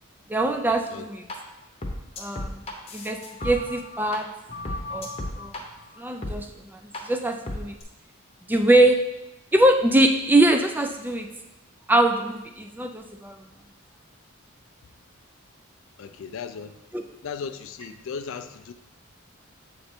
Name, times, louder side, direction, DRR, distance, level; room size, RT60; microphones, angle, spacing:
voice 1, 0.3-1.2 2.2-2.6 2.9-3.2 3.4-4.3 4.9-5.1 5.4-5.5 6.0-6.8 7.0-7.7 8.5-9.0 9.5-11.3 11.9-13.4 16.9-17.0, right 1 dB, 10° right, 5 dB, 0.3 m, -22 dB
sound 1, 1.3-1.4 1.8-4.2 4.5-5.6 6.2-6.4 6.9-7.0 7.5-7.8, left 1 dB, 30° left, 0.8 m, -34 dB
voice 2, 16.0-16.8 17.2-18.7, left 6 dB, 65° left, 10 dB, 0.4 m, -36 dB
7.8 x 3.3 x 4.3 m, 0.95 s
head